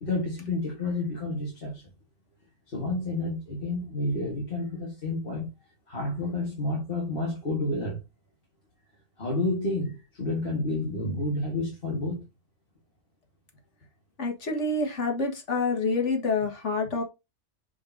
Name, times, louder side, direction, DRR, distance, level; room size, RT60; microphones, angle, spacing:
voice 1, 0.0-1.8 2.7-5.5 5.9-8.0 9.2-12.2, left 2 dB, 50° left, 2.0 m, -30 dB
voice 2, 14.2-17.0, left 3 dB, 80° left, 1.9 m, -27 dB
6.8 x 5.2 x 2.8 m
omnidirectional pair, 1.2 m